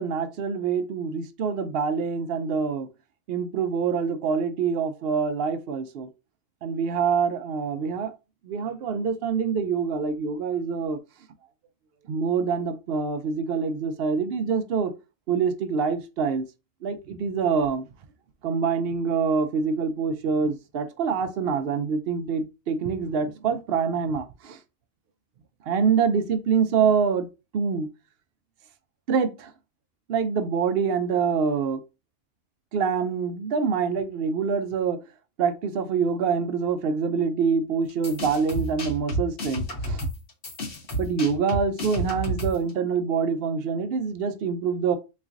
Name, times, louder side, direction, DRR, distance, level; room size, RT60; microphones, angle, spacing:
voice 1, 0.0-2.9 3.3-6.1 6.6-8.1 8.5-11.0 12.1-14.9 15.3-16.5 16.8-17.9 18.4-24.6 25.7-27.3 27.5-27.9 29.1-29.5 30.1-31.8 32.7-35.0 35.4-40.1 41.0-45.0, right 6 dB, 60° right, 0.7 m, -25 dB
sound 1, 37.9-42.7, right 1 dB, 55° left, 1.4 m, -30 dB
4.0 x 3.2 x 2.4 m
omnidirectional pair, 1.4 m